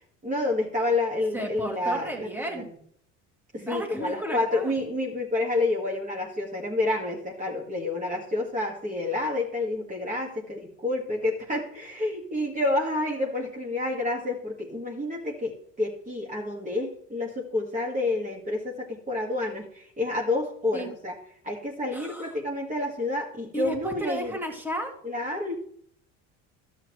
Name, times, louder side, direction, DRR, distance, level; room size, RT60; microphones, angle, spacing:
voice 1, 0.2-2.6 3.5-21.2 21.4-24.4 25.0-25.5, left 2 dB, 25° right, -1 dB, 1.7 m, -29 dB
voice 2, 1.3-2.8 3.6-4.7 20.7-20.9 21.9-22.3 23.5-24.9, right 1 dB, 5° right, 2 dB, 2.0 m, -33 dB
12.0 x 7.8 x 3.2 m, 0.62 s
supercardioid pair, 90°, 34 cm